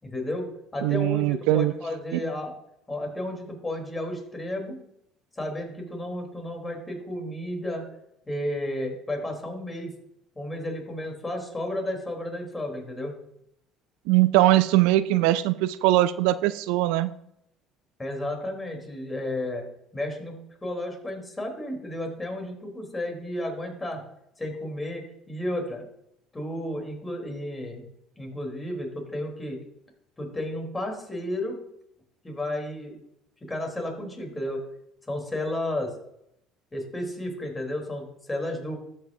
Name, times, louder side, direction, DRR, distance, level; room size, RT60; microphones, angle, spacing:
voice 1, 0.0-2.5 2.9-4.8 5.4-7.8 8.3-9.9 10.4-13.1 18.0-19.6 19.9-24.0 24.4-25.9 26.3-27.8 28.2-29.6 30.2-31.6 32.2-32.9 33.5-34.6 35.1-35.9 36.7-38.7, left 1 dB, 20° left, 1 dB, 3.5 m, -32 dB
voice 2, 0.8-1.7 2.1-2.2 14.1-17.1, right 16 dB, 75° right, 15 dB, 0.3 m, -21 dB
13.5 x 6.3 x 2.7 m, 0.76 s
hypercardioid pair, 65°, 0 cm